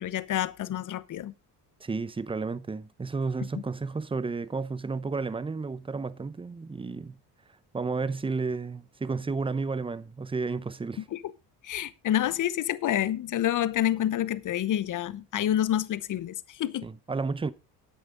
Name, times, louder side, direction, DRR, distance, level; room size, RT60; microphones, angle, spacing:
voice 1, 0.0-1.3 11.1-11.2 11.6-16.9, left 11 dB, 45° left, 0.9 m, -28 dB
voice 2, 1.8-7.2 7.7-11.0 16.8-17.5, right 4 dB, 15° right, 0.7 m, -32 dB
13.0 x 8.7 x 3.8 m
cardioid pair, 115°, 42 cm